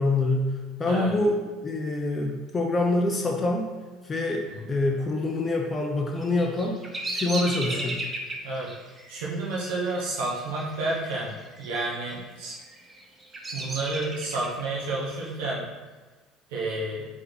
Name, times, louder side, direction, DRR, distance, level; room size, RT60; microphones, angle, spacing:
voice 1, 0.0-3.7 4.0-6.8 7.1-8.0, left 2 dB, 30° left, 0 dB, 0.5 m, -26 dB
Bird vocalization bird call bird song, 6.2-11.2 11.5-12.1 12.6-14.6, right 2 dB, 25° right, 0.7 m, -35 dB
voice 2, 9.1-11.3 11.6-12.6 13.5-15.7 16.5-17.1, right 2 dB, 70° right, -5 dB, 0.9 m, -30 dB
3.5 x 3.3 x 3.8 m, 1.3 s
hypercardioid pair, 65°, 0 cm